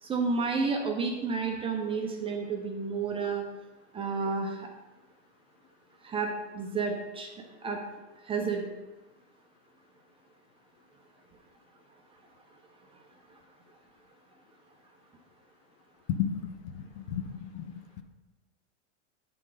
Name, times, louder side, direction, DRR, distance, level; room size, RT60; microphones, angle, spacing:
voice 1, 0.0-3.4 3.9-4.7 6.0-7.3 7.6-7.8 8.3-8.6, right 4 dB, 15° right, 1 dB, 0.7 m, -31 dB
voice 2, 16.1-18.0, left 8 dB, 65° left, 11 dB, 0.7 m, -34 dB
9.5 x 3.8 x 3.9 m, 1.1 s
supercardioid pair, 135°, 36 cm